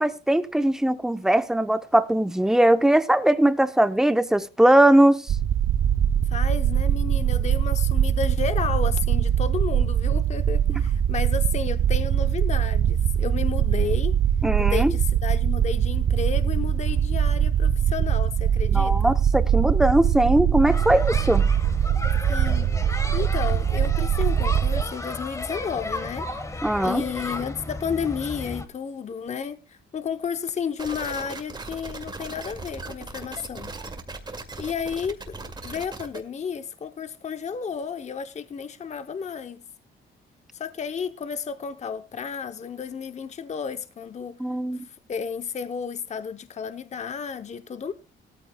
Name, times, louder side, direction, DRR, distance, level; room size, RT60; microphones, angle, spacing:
voice 1, 0.0-5.3 10.7-10.8 14.4-14.9 18.7-21.5 26.6-27.0 44.4-44.9, right 1 dB, ahead, 0.7 m, -20 dB
sound 1, 5.3-24.8, right 9 dB, 50° right, 0.6 m, -22 dB
voice 2, 6.3-14.1 14.6-19.1 22.3-22.7 23.1-26.3 26.8-33.7 34.6-39.6 40.5-44.4 44.7-47.9, left 6 dB, 35° left, 0.7 m, -32 dB
sound 2, 20.7-28.7, left 2 dB, 15° left, 1.3 m, -34 dB
sound 3, 30.8-36.2, right 3 dB, 20° right, 2.0 m, -38 dB
18.0 x 13.5 x 2.2 m
cardioid pair, 110°, 21 cm